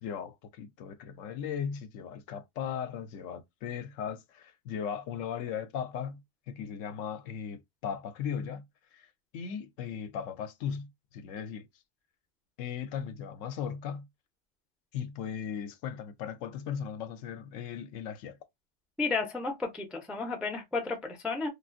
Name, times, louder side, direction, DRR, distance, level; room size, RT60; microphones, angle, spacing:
voice 1, 0.0-8.7 8.9-9.1 9.3-11.7 12.6-14.1 14.9-18.4, left 7 dB, 80° left, 0.9 m, -37 dB
voice 2, 19.0-21.5, left 4 dB, ahead, 0.4 m, -32 dB
3.5 x 2.5 x 2.5 m
omnidirectional pair, 1.3 m